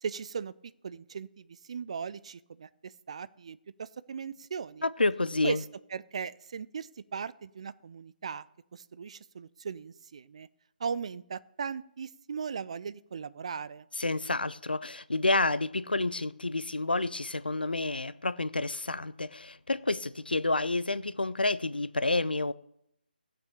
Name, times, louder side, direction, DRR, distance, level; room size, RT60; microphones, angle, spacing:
voice 1, 0.0-0.5 0.8-4.9 5.4-5.6 5.9-8.5 8.7-10.5 10.8-13.9, right 6 dB, 40° right, 0.4 m, -38 dB
voice 2, 4.8-5.6 14.0-22.5, left 2 dB, 75° left, 0.5 m, -29 dB
15.5 x 6.1 x 6.7 m
figure-of-eight pair, 145°, 5 cm